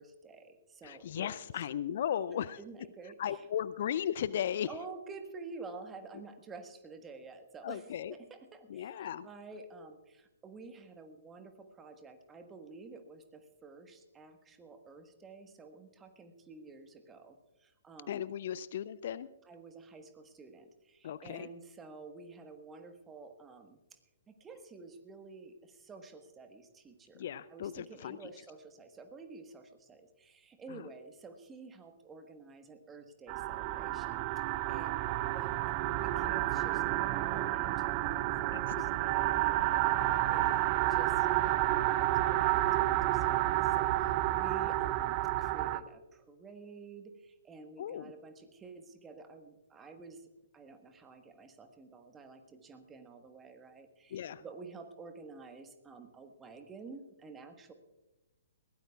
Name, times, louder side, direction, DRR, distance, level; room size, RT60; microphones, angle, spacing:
voice 1, 0.0-1.3 2.6-3.5 4.7-18.2 19.4-24.0 24.3-57.7, right 4 dB, 15° right, 6 dB, 1.4 m, -50 dB
voice 2, 0.8-2.6 3.2-4.7 7.6-8.1 8.7-9.3 18.1-19.3 21.0-21.5 27.1-28.2 30.7-30.9 38.5-38.8 40.4-40.6 47.8-48.1 54.1-54.4, left 10 dB, 50° left, 17 dB, 0.4 m, -36 dB
sound 1, 33.3-45.8, right 15 dB, 35° right, 0.5 m, -30 dB
21.5 x 16.5 x 2.4 m, 1.1 s
figure-of-eight pair, 120°, 0 cm